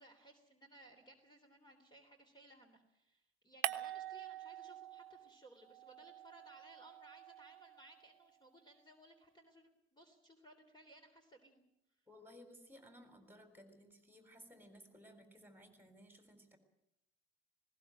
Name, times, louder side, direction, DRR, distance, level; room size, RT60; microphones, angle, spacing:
voice 1, 0.0-11.6, right 1 dB, 15° left, 4 dB, 3.4 m, -61 dB
sound 1, 3.6-5.3 5.6-8.1, right 15 dB, 65° right, 1.2 m, -45 dB
voice 2, 12.1-16.6, equal, 5° right, 8 dB, 4.2 m, -59 dB
19.5 x 17.5 x 9.1 m, 0.81 s
hypercardioid pair, 65°, 32 cm